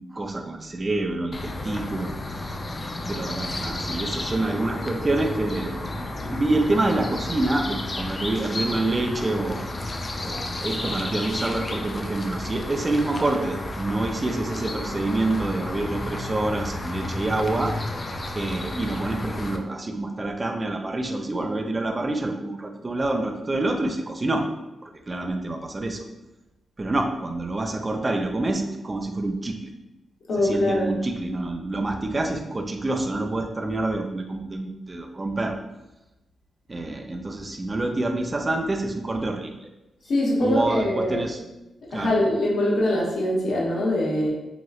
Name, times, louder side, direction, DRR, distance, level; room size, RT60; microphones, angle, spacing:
voice 1, 0.1-2.6 3.1-5.7 6.2-9.6 10.2-17.8 18.3-24.5 24.8-26.1 26.8-29.7 30.4-35.6 36.7-39.6 40.4-41.4 41.9-42.2, right 2 dB, 30° right, 4 dB, 0.4 m, -27 dB
sound 1, 1.3-19.6, left 2 dB, 35° left, 0.3 m, -32 dB
voice 2, 30.3-30.9 40.1-41.2 41.9-44.3, left 1 dB, 75° left, -4 dB, 0.9 m, -23 dB
3.0 x 2.9 x 2.3 m, 0.97 s
cardioid pair, 75°, 0 cm